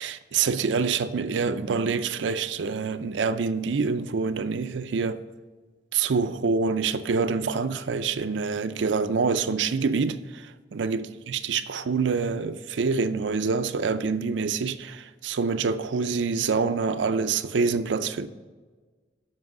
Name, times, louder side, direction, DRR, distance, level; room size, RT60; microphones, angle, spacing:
voice 1, 0.0-5.2 5.9-18.3, right 5 dB, 85° right, 0.5 m, -26 dB
7.5 x 5.7 x 6.0 m
head